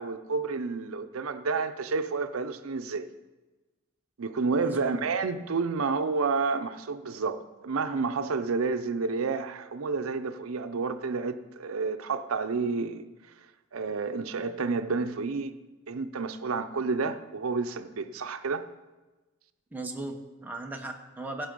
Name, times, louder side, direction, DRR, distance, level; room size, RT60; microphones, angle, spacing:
voice 1, 0.0-3.1 4.2-13.0 13.7-15.5 15.9-18.6, right 4 dB, 90° right, 9 dB, 0.6 m, -30 dB
voice 2, 4.6-4.9 19.7-21.5, right 2 dB, 10° right, 1 dB, 1.0 m, -37 dB
16.0 x 6.2 x 5.3 m, 1.2 s
head